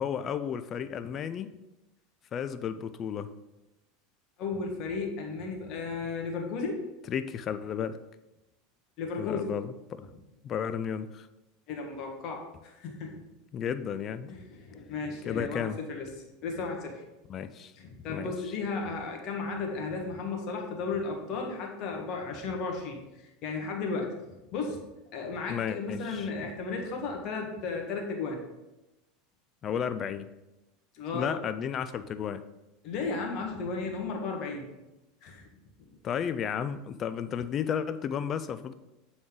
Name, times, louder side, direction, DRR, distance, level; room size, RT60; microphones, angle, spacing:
voice 1, 0.0-1.5 2.3-3.3 7.1-8.0 9.2-10.0 10.4-11.3 13.5-14.3 15.3-15.8 17.3-17.7 18.1-18.3 25.5-26.3 29.6-30.3 31.1-32.4 36.0-38.7, left 8 dB, 35° left, 12 dB, 0.4 m, -33 dB
voice 2, 4.4-6.8 9.0-9.5 11.7-13.2 14.3-16.1 16.4-17.0 17.8-24.8 25.1-28.4 30.9-31.4 32.8-34.7 35.2-35.5 35.8-35.9, left 4 dB, 50° left, 1 dB, 1.4 m, -34 dB
7.5 x 3.9 x 3.8 m, 0.98 s
supercardioid pair, 115°, 0 cm